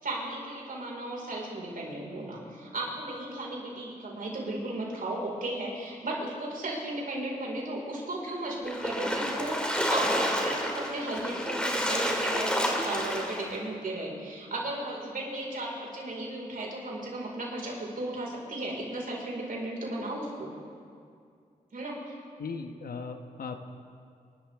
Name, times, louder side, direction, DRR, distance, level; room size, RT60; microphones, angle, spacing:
voice 1, 0.0-20.5 21.7-22.2, right 1 dB, 65° right, -3 dB, 4.8 m, -35 dB
Splash splatter, 8.7-13.5, equal, 5° left, 2.6 m, -29 dB
voice 2, 22.4-23.6, left 4 dB, 75° left, 6 dB, 1.1 m, -37 dB
28.0 x 12.5 x 3.6 m, 2.3 s
cardioid pair, 55°, 16 cm